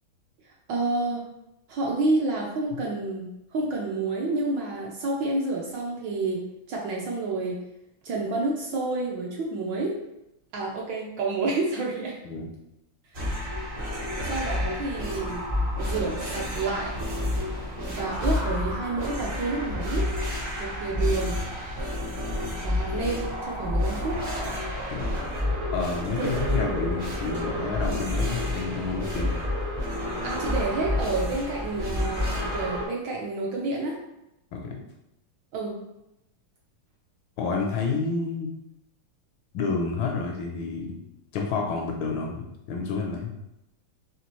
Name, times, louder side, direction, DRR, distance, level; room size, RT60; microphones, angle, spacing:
voice 1, 0.4-1.2 1.7-7.6 8.0-10.0 10.5-12.2 14.2-15.5 15.8-17.0 17.9-20.1 20.6-21.4 22.6-24.2 26.2-26.6 30.2-34.0 35.5-35.8, right 3 dB, 70° right, -2 dB, 1.2 m, -29 dB
sound 1, 13.1-32.9, left 1 dB, 50° right, 0.8 m, -29 dB
voice 2, 25.7-29.4 34.5-34.8 37.4-38.5 39.5-41.0 41.3-43.4, left 4 dB, 75° left, 1 dB, 1.2 m, -29 dB
4.3 x 3.2 x 3.0 m, 0.88 s
omnidirectional pair, 2.4 m